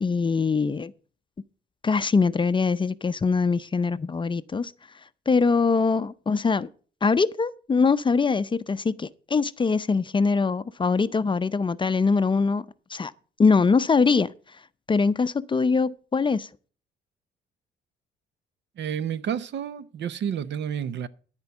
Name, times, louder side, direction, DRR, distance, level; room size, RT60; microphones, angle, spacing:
voice 1, 0.0-0.9 1.8-4.7 5.3-6.7 7.0-12.6 12.9-13.1 13.4-14.3 14.9-16.5, left 4 dB, 25° left, 0.5 m, -23 dB
voice 2, 18.8-21.1, right 8 dB, 65° right, 0.8 m, -30 dB
13.0 x 4.5 x 7.1 m
cardioid pair, 90°, 20 cm